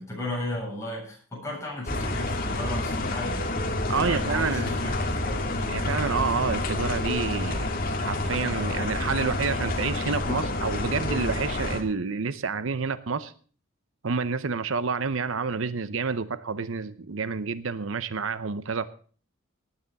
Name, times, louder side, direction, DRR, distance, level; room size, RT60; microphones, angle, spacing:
voice 1, 0.0-3.5 3.8-5.6, left 1 dB, 15° left, -3 dB, 7.8 m, -35 dB
sound 1, 1.9-11.8, left 2 dB, 45° left, 2.1 m, -28 dB
voice 2, 3.9-4.7 5.7-7.7 8.0-13.3 14.0-18.9, right 5 dB, 75° right, 14 dB, 0.7 m, -29 dB
18.5 x 10.0 x 4.1 m, 0.42 s
head